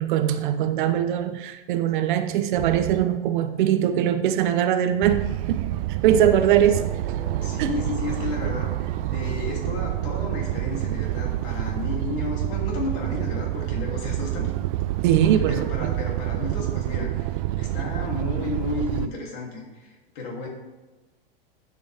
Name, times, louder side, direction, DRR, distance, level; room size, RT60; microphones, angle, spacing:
voice 1, 0.0-5.7 6.0-7.2 7.6-7.7 15.0-15.9, right 10 dB, 55° right, 9 dB, 0.8 m, -22 dB
sound 1, 2.6-3.0 5.0-19.1, right 16 dB, 40° right, 0.4 m, -28 dB
sound 2, 6.1-12.6, right 6 dB, 80° right, 1.0 m, -38 dB
voice 2, 7.4-14.5 15.2-20.5, left 3 dB, 45° left, -1 dB, 3.0 m, -33 dB
12.0 x 7.8 x 3.5 m, 1.2 s
supercardioid pair, 150°, 29 cm